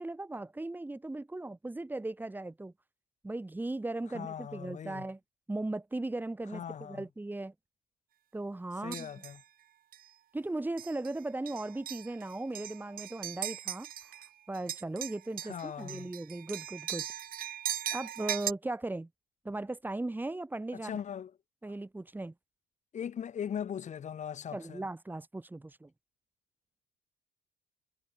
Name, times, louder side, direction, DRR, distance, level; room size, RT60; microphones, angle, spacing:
voice 1, 0.0-2.7 3.2-5.2 5.5-7.5 8.3-9.2 10.3-13.9 14.5-17.1 17.9-19.1 19.4-20.9 21.6-22.3 24.5-25.9, right 2 dB, 10° right, 4.1 m, -37 dB
voice 2, 4.1-5.1 6.5-7.1 8.8-9.4 15.4-16.1 20.7-21.3 22.9-24.8, left 8 dB, 45° left, 2.8 m, -39 dB
sound 1, 8.9-9.4 9.9-10.1 10.8-11.1 11.5-14.3 14.5-18.5, right 11 dB, 60° right, 6.5 m, -39 dB
cardioid pair, 110°, 17 cm